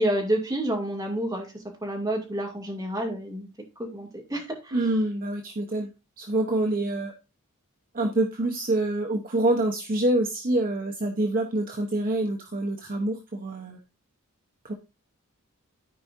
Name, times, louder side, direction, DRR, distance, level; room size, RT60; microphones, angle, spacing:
voice 1, 0.0-1.5 1.8-3.5 3.8-4.8, right 1 dB, 15° right, -1 dB, 2.5 m, -29 dB
voice 2, 4.7-5.9 6.2-7.1 7.9-13.8 14.6-14.7, right 1 dB, 40° right, 2 dB, 0.9 m, -26 dB
14.0 x 4.8 x 2.6 m, 0.28 s
head